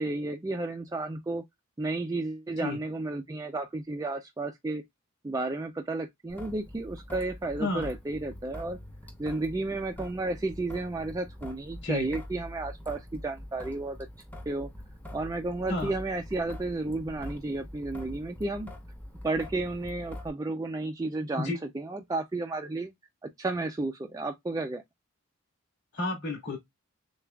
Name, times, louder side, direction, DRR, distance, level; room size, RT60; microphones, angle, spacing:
voice 1, 0.0-1.4 1.8-4.8 5.2-8.8 9.2-14.0 14.5-14.7 15.1-18.7 19.2-22.9 23.2-24.8, right 2 dB, 15° right, 0.3 m, -32 dB
Traffic noise roadway noise / Drip / Trickle dribble, 6.3-20.3, left 1 dB, 10° left, 0.7 m, -44 dB
voice 2, 7.6-7.9 11.8-12.1 15.7-15.9 21.4-21.5 25.9-26.6, left 2 dB, 50° left, 2.5 m, -31 dB
6.8 x 2.3 x 2.2 m
head